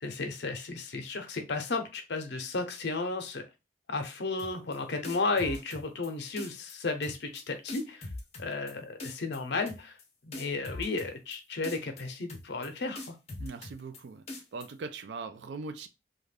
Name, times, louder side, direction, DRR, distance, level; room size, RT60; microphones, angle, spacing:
voice 1, 0.0-3.4 3.9-8.1 8.4-10.0 10.2-13.2, left 3 dB, 75° left, 0.6 m, -33 dB
sound 1, 4.4-4.8 5.0-6.1 6.4-6.7 7.0-7.4 7.7-8.7 9.0-9.4 9.7-10.0 10.3-11.4 11.6-12.0 12.3-12.7 13.0-14.0 14.3-14.7, left 2 dB, 35° left, 0.6 m, -42 dB
voice 2, 13.4-14.2 14.5-15.9, right 4 dB, 75° right, 0.4 m, -40 dB
2.5 x 2.2 x 3.3 m
head